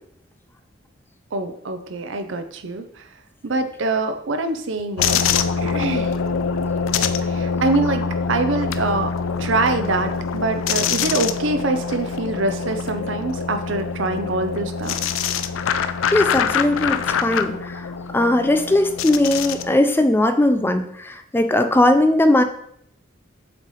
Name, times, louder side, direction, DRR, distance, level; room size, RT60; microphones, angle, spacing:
voice 1, 1.3-3.0 3.4-5.2 5.6-6.1 7.2-9.1 9.4-15.1, right 3 dB, 70° right, 7 dB, 0.6 m, -24 dB
sound 1, 5.0-19.7, left 6 dB, 80° left, 0.4 m, -24 dB
voice 2, 16.1-17.9 18.1-22.4, left 1 dB, 10° left, 8 dB, 0.3 m, -18 dB
7.3 x 3.2 x 4.1 m, 0.69 s
head